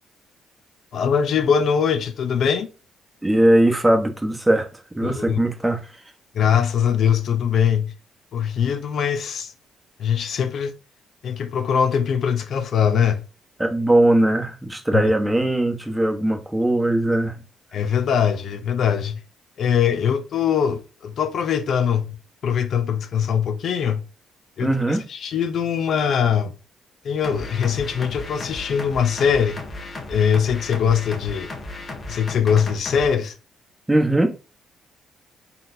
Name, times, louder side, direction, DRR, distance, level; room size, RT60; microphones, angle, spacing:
voice 1, 0.9-2.7 5.0-5.4 6.3-7.9 8.3-9.5 10.0-10.7 11.2-13.2 14.9-15.1 17.7-19.2 19.6-22.2 22.4-24.0 24.6-26.5 27.0-29.6 30.1-31.5 32.1-33.3, left 7 dB, 65° left, 0.6 m, -22 dB
voice 2, 3.2-4.7 4.9-5.9 13.6-17.4 24.6-25.0 33.9-34.3, right 1 dB, 10° right, 1.0 m, -19 dB
sound 1, 27.2-33.1, left 2 dB, 40° left, 1.2 m, -35 dB
4.1 x 4.0 x 2.6 m
cardioid pair, 90°, 0 cm